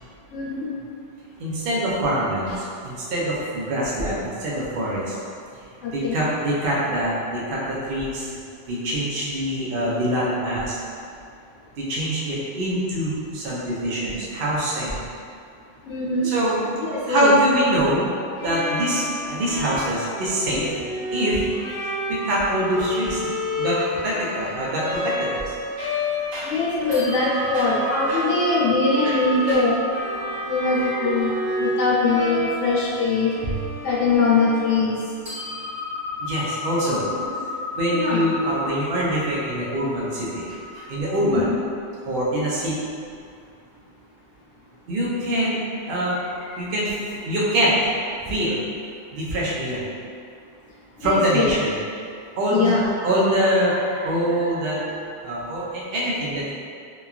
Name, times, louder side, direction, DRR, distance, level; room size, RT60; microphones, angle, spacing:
voice 1, 0.3-0.7 5.8-6.2 15.8-16.3 16.8-17.3 26.4-29.8 30.5-31.3 31.6-33.3 33.8-35.0 37.9-38.2 41.2-41.5 51.0-51.5 52.5-52.9, left 3 dB, 85° left, -6 dB, 1.0 m, -22 dB
voice 2, 1.4-5.2 5.9-8.3 8.7-10.8 11.8-15.0 16.2-16.6 17.1-18.1 18.4-20.8 21.1-21.6 22.1-23.3 23.6-26.0 26.3-26.5 26.9-27.0 27.5-27.7 28.1-28.3 29.0-29.6 30.1-31.7 33.4-33.6 36.2-37.1 37.7-41.4 42.0-42.7 44.9-47.8 48.2-48.6 49.1-49.9 51.0-51.7 52.4-52.7 53.0-56.5, right 1 dB, 55° right, -6 dB, 0.7 m, -24 dB
Bowed string instrument, 18.4-35.3, left 1 dB, 55° left, 0.8 m, -31 dB
sound 1, 22.4-26.5 26.9-35.0 35.3-41.0, equal, 25° right, 1.0 m, -34 dB
3.0 x 2.3 x 2.3 m, 2.3 s
omnidirectional pair, 1.3 m